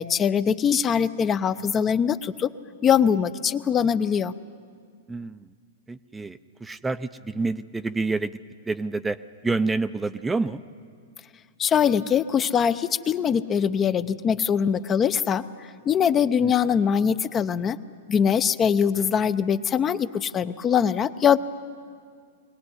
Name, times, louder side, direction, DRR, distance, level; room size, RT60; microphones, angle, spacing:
voice 1, 0.0-2.5 2.8-4.3 11.6-15.4 15.9-17.8 18.1-21.4, left 7 dB, 25° left, 12 dB, 0.7 m, -22 dB
voice 2, 5.1-5.4 5.9-8.4 8.7-9.2 9.4-10.6 16.4-16.5, right 3 dB, 10° right, 11 dB, 0.6 m, -28 dB
22.0 x 18.0 x 9.8 m, 2.1 s
hypercardioid pair, 115°, 0 cm